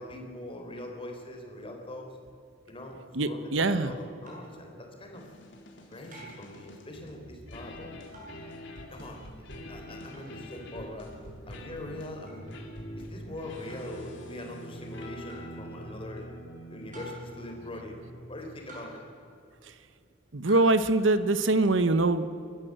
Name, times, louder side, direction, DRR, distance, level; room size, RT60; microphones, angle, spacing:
voice 1, 0.0-2.2 2.7-5.2 5.9-7.9 8.9-11.1 11.5-12.5 13.1-16.3 16.7-18.0 18.3-19.0, left 1 dB, 30° left, 2 dB, 4.1 m, -42 dB
voice 2, 3.1-3.9 20.3-22.3, right 2 dB, 70° right, 12 dB, 1.1 m, -23 dB
sound 1, 4.2-4.6 6.1-6.5 8.1-8.4 10.1-10.3 12.3-12.4 13.7-14.0 15.3-15.6 16.9-17.4 18.7-19.1 20.5-20.8, right 1 dB, 40° right, 7.8 m, -48 dB
sound 2, 5.1-18.6, equal, 65° left, 3.6 m, -45 dB
30.0 x 14.5 x 8.0 m, 2.6 s
head